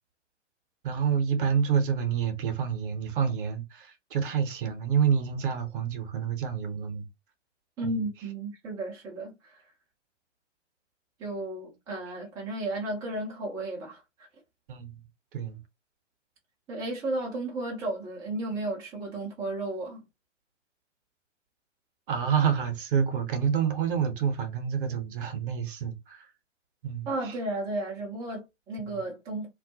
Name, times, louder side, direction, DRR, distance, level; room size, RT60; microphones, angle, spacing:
voice 1, 0.8-7.1 7.8-8.0 14.7-15.0 15.3-15.6 22.1-26.3 26.8-27.4 28.8-29.0, right 7 dB, 45° right, 0.7 m, -28 dB
voice 2, 7.8-9.6 11.2-14.3 16.7-20.0 27.1-29.5, right 2 dB, 10° right, 0.4 m, -34 dB
2.2 x 2.0 x 2.7 m
figure-of-eight pair, 110°, 36 cm